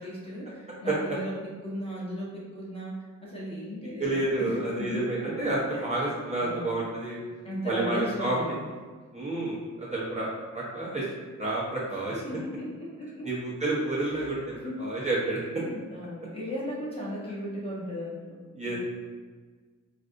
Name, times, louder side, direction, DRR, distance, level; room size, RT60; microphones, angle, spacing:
voice 1, 0.0-5.1 5.7-5.9 6.4-6.8 7.4-8.6 12.1-13.3 14.0-14.8 15.6-18.4 18.7-18.8, equal, 20° left, -7 dB, 0.9 m, -37 dB
voice 2, 4.0-7.2 7.7-8.4 9.1-10.3 10.5-11.1 11.4-12.2 13.2-15.4 18.5-18.8, right 2 dB, 20° right, -7 dB, 0.8 m, -29 dB
3.3 x 2.5 x 2.5 m, 1.5 s
cardioid pair, 75°, 30 cm